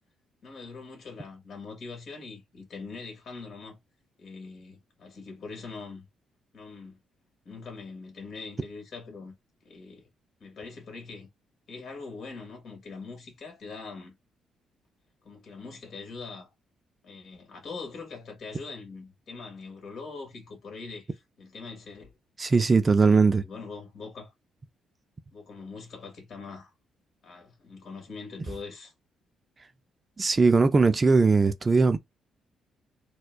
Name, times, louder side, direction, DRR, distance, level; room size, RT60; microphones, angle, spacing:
voice 1, 0.4-3.8 4.2-6.1 6.5-7.0 7.4-9.3 9.6-10.0 10.4-11.3 11.7-14.1 15.2-16.5 17.0-22.1 23.0-24.3 25.3-26.7 27.2-28.9, left 4 dB, 60° left, 2.0 m, -42 dB
voice 2, 22.4-23.4 30.2-32.0, right 4 dB, 30° right, 0.4 m, -20 dB
4.4 x 2.3 x 2.3 m
cardioid pair, 90°, 0 cm